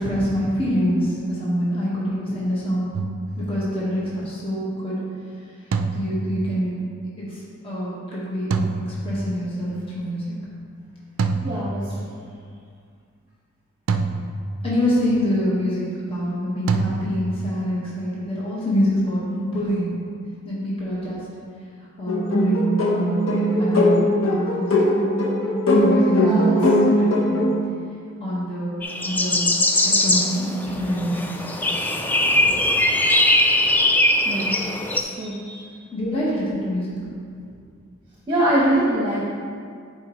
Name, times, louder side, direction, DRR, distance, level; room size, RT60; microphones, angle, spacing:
voice 1, 0.0-2.9 3.4-5.0 5.9-6.8 7.2-10.2 14.6-20.0 20.4-21.2 22.0-24.0 24.3-24.7 25.8-27.5 28.2-28.7 29.0-29.5 30.0-31.5 32.4-32.6 35.9-36.9, equal, 30° left, -8 dB, 1.6 m, -25 dB
sound 1, 2.9-3.9 5.7-6.9 8.5-9.7 11.2-12.3 13.9-15.0 16.7-17.6, right 3 dB, 70° right, 0.4 m, -27 dB
voice 2, 11.4-12.1 26.2-26.6 34.2-34.7 34.9-35.6 38.3-39.2, right 1 dB, 25° right, -7 dB, 1.0 m, -23 dB
sound 2, 22.1-27.5, left 1 dB, 85° left, 1.0 m, -19 dB
sound 3, 28.8-35.0, left 1 dB, 10° left, 0.3 m, -20 dB
9.4 x 4.4 x 3.1 m, 2.2 s
head